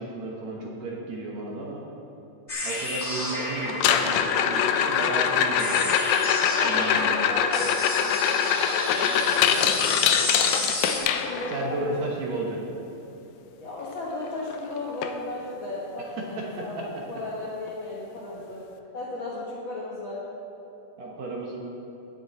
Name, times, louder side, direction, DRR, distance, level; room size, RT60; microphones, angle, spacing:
voice 1, 0.0-1.8 2.6-5.9 6.6-7.3 11.5-12.7 16.4-16.5 16.8-16.9 21.0-21.6, right 2 dB, 65° right, -2 dB, 2.0 m, -33 dB
sound 1, 2.5-11.0, left 2 dB, 25° left, 1.1 m, -32 dB
sound 2, 3.7-11.7 13.9-14.0 14.3-14.6 15.0-15.1 15.7-15.8 17.7-17.8, left 8 dB, 80° left, 2.3 m, -23 dB
voice 2, 6.5-10.1 10.8-11.9 12.5-12.8 13.6-18.6 18.9-20.3, left 2 dB, 60° left, -6 dB, 1.3 m, -35 dB
18.0 x 6.8 x 4.1 m, 3.0 s
omnidirectional pair, 4.1 m